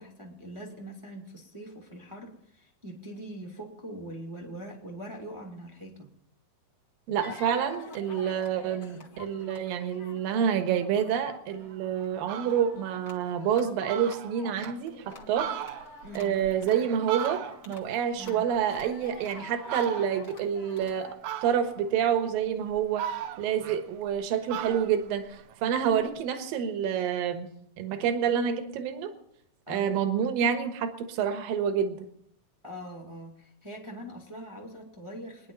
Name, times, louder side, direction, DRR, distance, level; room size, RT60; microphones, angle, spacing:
voice 1, 0.0-6.1 16.0-16.4 18.2-18.4 29.7-30.0 32.6-35.5, equal, 10° right, -1 dB, 1.3 m, -42 dB
voice 2, 7.1-15.5 16.1-23.1 23.4-27.5 27.8-29.1 29.7-32.0, right 8 dB, 70° right, 7 dB, 3.0 m, -28 dB
sound 1, 7.2-21.1, left 3 dB, 35° left, 1.7 m, -48 dB
Fowl, 11.6-11.7 12.1-12.7 13.2-13.3 13.6-13.7 13.9-14.8 15.2-17.8 18.2-19.2 19.6-20.3 21.2-21.9 22.4-24.2 24.5-26.1, right 10 dB, 85° right, 1.6 m, -38 dB
23.0 x 10.5 x 5.4 m, 0.72 s
omnidirectional pair, 4.5 m